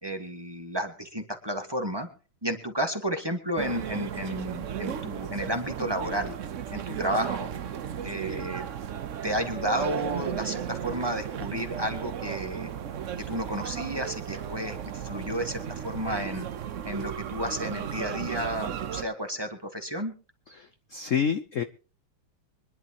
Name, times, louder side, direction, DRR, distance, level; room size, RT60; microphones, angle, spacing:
voice 1, 0.0-2.1 2.4-6.4 6.7-7.5 8.0-8.7 9.2-12.7 13.1-16.5 16.8-20.1, equal, 15° right, 4 dB, 1.5 m, -32 dB
sound 1, 3.6-19.0, right 9 dB, 70° right, 0.7 m, -35 dB
voice 2, 20.5-21.6, left 7 dB, 65° left, 9 dB, 0.7 m, -28 dB
24.5 x 11.0 x 3.0 m, 0.38 s
omnidirectional pair, 2.3 m